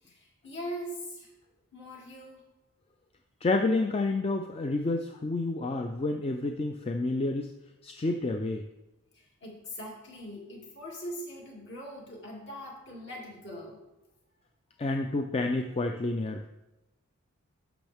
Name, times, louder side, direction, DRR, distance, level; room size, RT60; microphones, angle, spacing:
voice 1, 0.0-1.3 1.7-2.4 9.1-13.8, equal, 50° left, -2 dB, 2.5 m, -41 dB
voice 2, 3.4-7.5 7.8-8.7 14.8-16.5, left 2 dB, 25° left, 5 dB, 0.4 m, -29 dB
12.0 x 6.2 x 3.5 m, 0.99 s
head